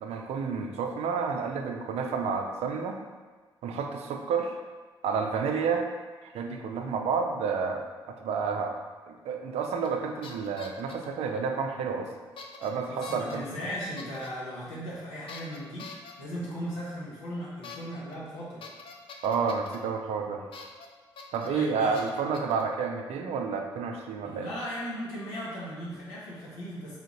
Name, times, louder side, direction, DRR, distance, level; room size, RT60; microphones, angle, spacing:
voice 1, 0.0-3.0 3.6-4.6 5.0-5.9 6.2-7.8 8.1-8.8 9.1-12.1 12.6-13.4 19.2-20.4 21.3-24.5, right 5 dB, 60° right, 3 dB, 0.4 m, -30 dB
sound 1, 9.8-10.0 10.2-11.1 12.4-12.7 13.0-13.4 14.0-14.3 15.3-16.1 17.6-17.8 18.1-18.2 18.6-19.8 20.5-20.9 21.2-21.5 21.9-22.6, left 4 dB, 50° left, 0.4 m, -45 dB
voice 2, 12.9-15.9 16.2-18.6 21.4-22.0 24.2-27.0, equal, 75° left, -7 dB, 1.0 m, -37 dB
3.4 x 2.5 x 2.9 m, 1.4 s
hypercardioid pair, 40°, 12 cm